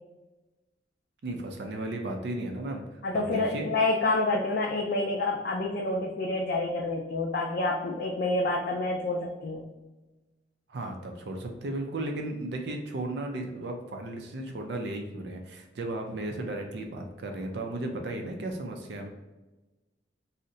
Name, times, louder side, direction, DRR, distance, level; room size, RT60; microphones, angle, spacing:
voice 1, 1.2-3.7 10.7-19.1, right 2 dB, 65° right, 3 dB, 0.4 m, -35 dB
voice 2, 3.0-9.7, left 2 dB, 60° left, -1 dB, 0.4 m, -28 dB
2.7 x 2.1 x 3.7 m, 1.1 s
head